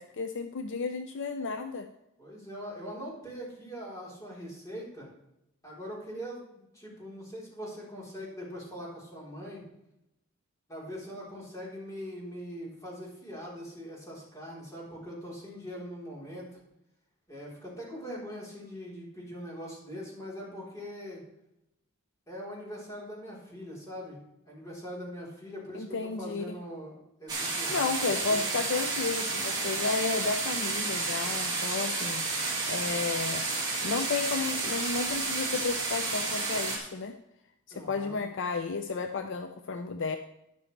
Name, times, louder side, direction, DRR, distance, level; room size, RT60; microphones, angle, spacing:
voice 1, 0.0-1.9 25.7-26.6 27.7-32.3 32.7-33.5 33.8-37.1 37.7-40.2, left 4 dB, 55° left, 7 dB, 0.6 m, -32 dB
voice 2, 2.2-5.1 5.6-6.4 6.7-9.7 10.7-16.6 17.3-21.2 22.3-27.9 28.2-28.5 37.7-38.2, equal, 15° left, -5 dB, 3.8 m, -42 dB
sound 1, 27.3-36.8, right 3 dB, 20° right, 3.0 m, -31 dB
12.0 x 10.0 x 3.3 m, 0.85 s
head